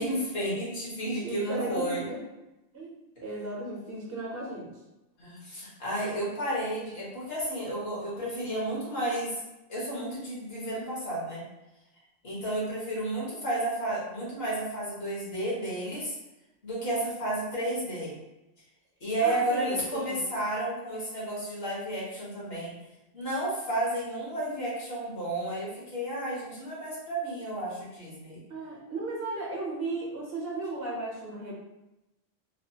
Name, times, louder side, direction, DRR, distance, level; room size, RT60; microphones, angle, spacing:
voice 1, 0.0-2.0 5.2-9.4 9.7-11.4 12.2-16.1 16.6-18.1 19.0-22.7 23.1-28.4, right 1 dB, 55° left, -6 dB, 1.4 m, -32 dB
voice 2, 1.2-2.2 2.7-2.9 3.2-4.7 19.2-20.2 28.5-31.5, right 2 dB, 60° right, -3 dB, 0.8 m, -35 dB
3.2 x 2.3 x 2.7 m, 0.97 s
omnidirectional pair, 1.2 m